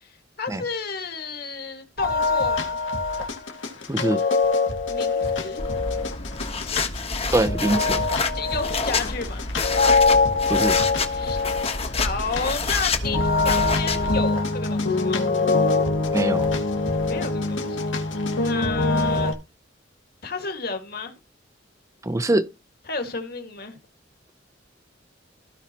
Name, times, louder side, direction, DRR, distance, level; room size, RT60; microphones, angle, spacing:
voice 1, 0.4-2.8 4.8-5.6 8.3-9.5 11.1-11.4 12.0-15.3 17.0-17.8 18.4-19.4 20.2-21.1 22.9-23.8, left 4 dB, 55° left, 2.1 m, -31 dB
sound 1, 2.0-19.3, left 3 dB, 85° left, 2.2 m, -24 dB
voice 2, 3.9-4.2 7.3-8.0 10.5-10.8 16.1-16.5 22.0-22.5, right 1 dB, 15° right, 0.6 m, -23 dB
sound 2, 5.6-14.2, left 4 dB, 35° left, 1.2 m, -28 dB
16.0 x 5.6 x 3.0 m
head